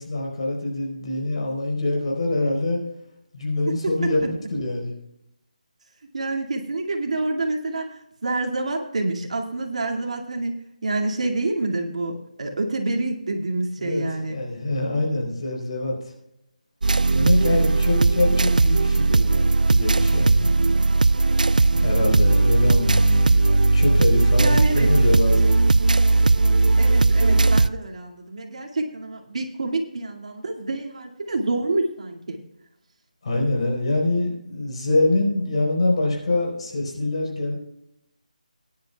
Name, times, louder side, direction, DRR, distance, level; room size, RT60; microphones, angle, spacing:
voice 1, 0.0-2.8 3.3-5.0 13.8-16.1 17.1-20.5 21.8-25.6 33.2-37.6, left 2 dB, 45° left, 0 dB, 4.2 m, -24 dB
voice 2, 6.1-7.9 8.2-14.4 24.4-24.9 26.8-32.4, right 2 dB, 55° right, 1 dB, 2.2 m, -27 dB
sound 1, 16.8-27.7, right 3 dB, 75° right, 0.5 m, -18 dB
20.0 x 10.5 x 2.3 m, 0.80 s
figure-of-eight pair, 170°, 4 cm